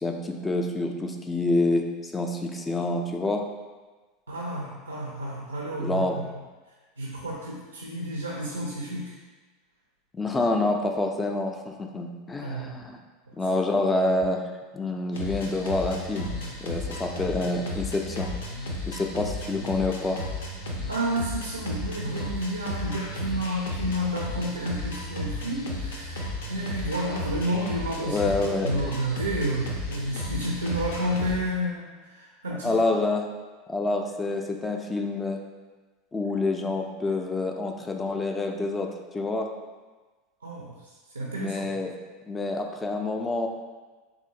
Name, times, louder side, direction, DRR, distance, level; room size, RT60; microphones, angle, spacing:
voice 1, 0.0-3.4 5.8-6.2 10.1-13.0 13.4-14.4 14.7-16.3 16.6-18.3 18.9-20.2 28.0-28.7 32.6-33.3 33.7-35.4 36.1-39.5 41.3-41.9 42.3-43.5, left 2 dB, 20° left, 3 dB, 0.3 m, -27 dB
voice 2, 4.3-6.3 7.0-9.2 12.4-12.8 20.9-32.7 40.4-41.7, right 1 dB, 90° right, -2 dB, 0.4 m, -31 dB
sound 1, 15.1-31.3, left 1 dB, 75° left, 0.5 m, -34 dB
3.6 x 2.5 x 2.7 m, 1.3 s
figure-of-eight pair, 80°, 0 cm